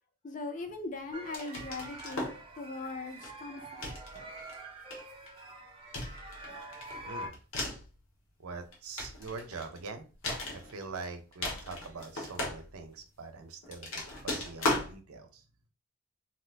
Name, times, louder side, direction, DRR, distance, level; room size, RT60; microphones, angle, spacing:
voice 1, 0.2-3.9, left 3 dB, 35° left, 0.4 m, -40 dB
sound 1, 1.1-7.3, right 1 dB, 25° right, 0.5 m, -46 dB
sound 2, 1.3-2.4 3.2-3.4 3.8-4.5 4.9-5.4 5.9-7.9 8.6-9.8 10.2-11.1 11.3-13.0 13.6-14.9, left 2 dB, 70° left, 1.0 m, -37 dB
voice 2, 7.0-7.4 8.4-10.1 10.5-15.5, right 4 dB, 90° right, 0.6 m, -44 dB
2.7 x 2.4 x 3.3 m
head